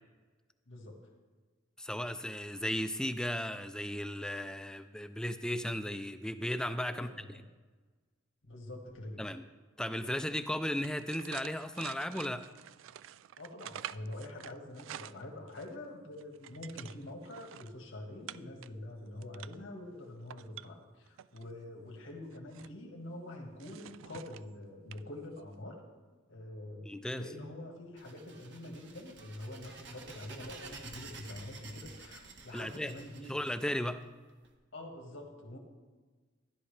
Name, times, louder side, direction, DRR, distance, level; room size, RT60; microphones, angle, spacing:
voice 1, 1.8-7.4 9.2-9.4 9.8-12.5 26.9-27.2 32.5-32.9 33.3-34.0, left 1 dB, 5° left, 10 dB, 0.4 m, -35 dB
voice 2, 6.9-7.4 8.4-9.4 13.4-25.8 26.3-33.4 34.7-35.6, left 1 dB, 85° left, 1 dB, 1.7 m, -45 dB
sound 1, 10.7-15.7 16.1-17.7 18.3-18.7 19.1-19.7 20.2-21.4 22.1-22.7 23.6-24.5 24.9-25.0 25.4-25.5, right 11 dB, 85° right, 0.3 m, -48 dB
sound 2, 28.0-34.5, right 4 dB, 65° right, 1.5 m, -51 dB
13.5 x 11.0 x 3.3 m, 1.4 s
head